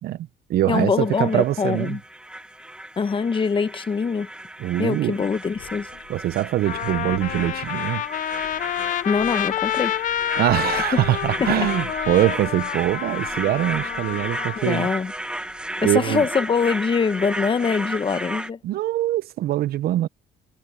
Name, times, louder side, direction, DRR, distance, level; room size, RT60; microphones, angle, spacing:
voice 1, 0.0-2.0 4.6-5.2 6.1-8.0 10.4-14.9 15.8-16.3 18.6-20.1, right 14 dB, 65° right, 0.7 m, -23 dB
voice 2, 0.7-2.0 3.0-4.3 4.8-5.9 9.0-9.9 11.4-11.7 14.6-15.1 15.8-18.6, left 5 dB, 30° left, 1.3 m, -23 dB
sound 1, 1.0-18.5, right 1 dB, 5° right, 1.3 m, -34 dB
Thunder, 5.2-18.2, left 15 dB, 80° left, 5.3 m, -47 dB
Trumpet, 5.9-6.0 6.6-14.6, left 12 dB, 50° left, 0.5 m, -28 dB
cardioid pair, 110°, 17 cm